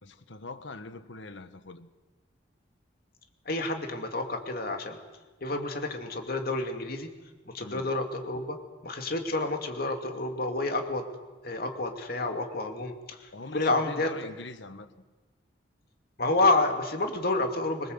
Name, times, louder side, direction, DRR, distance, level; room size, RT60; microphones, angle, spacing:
voice 1, 0.0-1.9 7.6-7.9 13.3-14.9, left 3 dB, 75° left, 1.5 m, -42 dB
voice 2, 3.5-5.0 5.4-7.1 7.5-8.6 8.8-11.1 11.4-14.1 16.2-17.9, left 2 dB, 55° left, 2.5 m, -29 dB
25.5 x 21.0 x 8.1 m
head